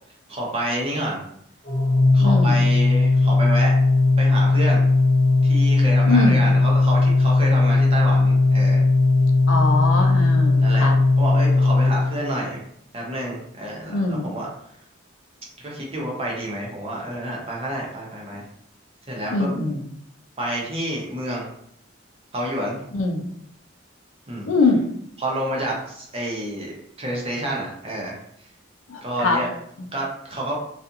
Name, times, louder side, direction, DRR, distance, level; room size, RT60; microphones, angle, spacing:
voice 1, 0.3-1.2 2.1-3.7 4.2-4.8 5.4-8.8 10.6-10.9 11.2-12.6 12.9-14.5 15.6-18.4 19.1-19.5 20.4-21.5 22.3-22.8 24.3-24.5 25.2-28.2 29.0-29.5 29.9-30.6, right 1 dB, 30° right, -3 dB, 0.7 m, -29 dB
Organ, 1.7-12.5, left 3 dB, 40° left, 0.5 m, -18 dB
voice 2, 2.2-2.6 6.1-6.4 9.5-10.9 13.9-14.3 19.3-19.8 22.9-23.2 24.5-24.8 28.9-29.4 29.8-29.9, left 3 dB, 85° left, 2 dB, 0.5 m, -22 dB
2.4 x 2.4 x 2.7 m, 0.70 s
head